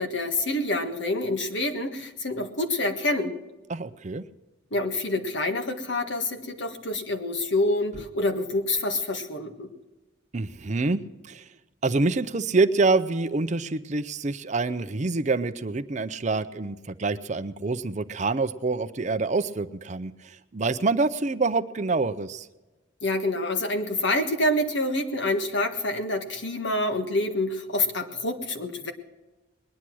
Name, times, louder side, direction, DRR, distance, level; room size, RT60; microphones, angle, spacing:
voice 1, 0.0-3.3 4.7-9.7 23.0-28.9, left 1 dB, 65° left, 5 dB, 1.6 m, -27 dB
voice 2, 3.7-4.2 10.3-11.5 11.8-22.5, right 3 dB, 35° right, 11 dB, 0.5 m, -26 dB
20.5 x 10.0 x 6.1 m, 1.1 s
head